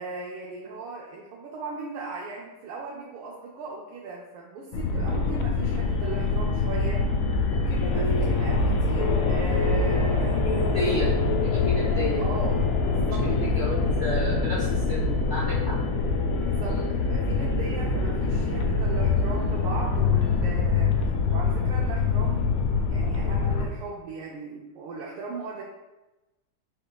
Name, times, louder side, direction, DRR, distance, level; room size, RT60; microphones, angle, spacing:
voice 1, 0.0-7.0 7.5-11.0 12.2-13.7 16.4-22.6 22.9-25.6, right 3 dB, 85° right, -4 dB, 1.5 m, -38 dB
sound 1, 4.7-23.7, left 4 dB, 85° left, 1.5 m, -24 dB
voice 2, 10.4-11.1 11.4-12.2 13.2-15.5 16.7-16.9, left 1 dB, 50° left, -8 dB, 0.8 m, -31 dB
5.0 x 4.4 x 2.3 m, 1.0 s
omnidirectional pair, 2.3 m